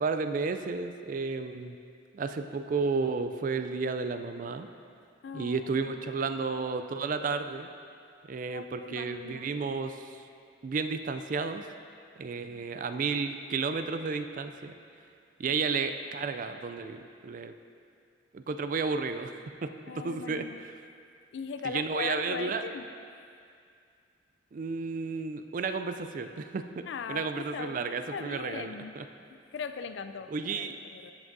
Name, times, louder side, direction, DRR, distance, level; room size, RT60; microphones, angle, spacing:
voice 1, 0.0-1.8 2.1-4.7 5.3-7.7 8.3-10.3 10.6-11.7 12.2-15.1 15.4-17.5 18.3-20.8 21.6-22.6 24.5-29.1 30.3-30.8, right 4 dB, 45° right, 8 dB, 0.3 m, -32 dB
voice 2, 5.2-5.9 8.5-9.5 12.5-12.6 19.9-20.6 21.3-22.8 26.9-27.8 28.1-29.0 29.5-30.3 30.6-31.1, left 5 dB, 70° left, 9 dB, 0.4 m, -39 dB
14.0 x 6.0 x 2.7 m, 2.4 s
head